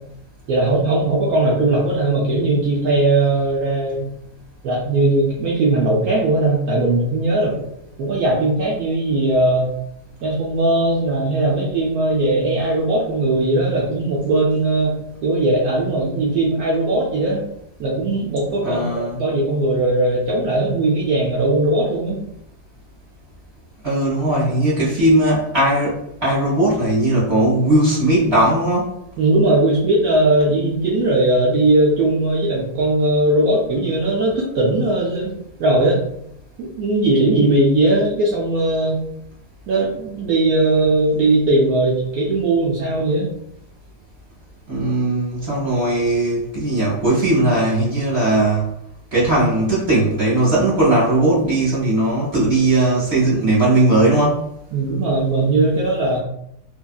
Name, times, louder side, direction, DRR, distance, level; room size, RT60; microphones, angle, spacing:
voice 1, 0.5-4.1 4.6-7.7 8.0-9.7 10.2-14.9 15.2-17.4 17.8-22.2 29.2-35.3 35.6-36.0 36.6-39.0 39.7-43.3 54.7-56.2, right 2 dB, 75° right, -4 dB, 0.8 m, -19 dB
voice 2, 18.6-19.2 23.8-28.9 44.7-48.7 49.1-54.5, right 1 dB, 40° right, -10 dB, 1.0 m, -18 dB
2.8 x 2.6 x 2.2 m, 0.75 s
omnidirectional pair, 2.0 m